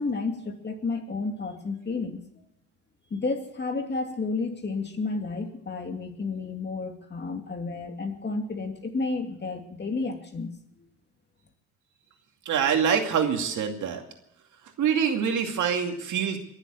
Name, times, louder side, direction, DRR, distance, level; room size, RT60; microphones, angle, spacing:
voice 1, 0.0-2.2 3.1-10.5, left 3 dB, 35° left, 4 dB, 2.7 m, -31 dB
voice 2, 12.5-14.0 14.8-16.4, right 7 dB, 75° right, 4 dB, 2.5 m, -25 dB
22.5 x 7.7 x 8.0 m, 0.76 s
cardioid pair, 90°, 30 cm